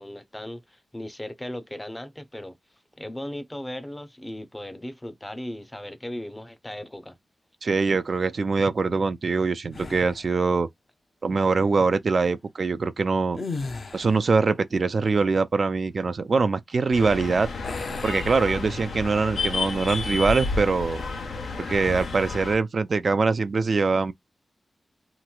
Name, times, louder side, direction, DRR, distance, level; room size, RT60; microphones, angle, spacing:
voice 1, 0.0-2.6 3.0-7.2, left 1 dB, 15° left, 0.6 m, -37 dB
voice 2, 7.6-10.7 11.2-13.4 13.9-17.5 18.0-21.0 21.6-24.1, right 4 dB, 55° right, 0.3 m, -23 dB
sound 1, 9.7-10.4 13.3-14.4 17.6-19.1 19.5-19.7 21.8-22.3, left 3 dB, 55° left, 0.8 m, -36 dB
sound 2, 16.9-22.6, left 4 dB, 80° left, 1.0 m, -31 dB
3.1 x 3.0 x 2.2 m
wide cardioid pair, 95°, 0 cm